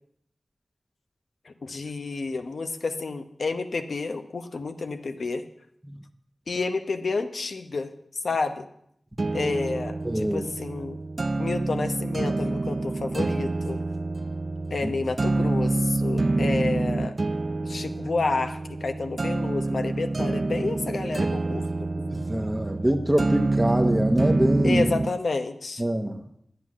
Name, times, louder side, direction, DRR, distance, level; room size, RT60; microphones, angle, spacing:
voice 1, 1.4-5.4 6.5-7.9 8.2-8.7 9.3-11.0 11.4-13.8 14.7-17.1 17.6-21.6 24.6-25.8, left 3 dB, 75° left, 7 dB, 0.9 m, -30 dB
sound 1, 9.2-25.2, right 2 dB, 45° right, 0.3 m, -27 dB
voice 2, 10.0-10.4 14.8-14.9 22.0-24.9 25.8-26.2, right 1 dB, 15° right, 3 dB, 1.0 m, -24 dB
10.0 x 9.3 x 6.2 m, 0.72 s
wide cardioid pair, 60°, 0 cm